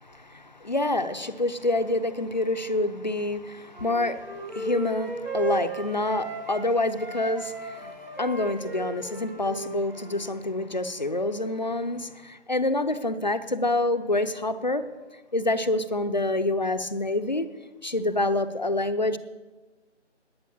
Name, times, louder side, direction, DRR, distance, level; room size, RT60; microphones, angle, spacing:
voice 1, 0.0-14.8 15.3-17.5 17.8-19.2, left 2 dB, 40° left, 11 dB, 0.7 m, -27 dB
Wind instrument woodwind instrument, 3.7-6.7 7.0-10.3, right 3 dB, 55° right, 4.2 m, -35 dB
20.0 x 8.3 x 7.0 m, 1.3 s
figure-of-eight pair, 165°, 36 cm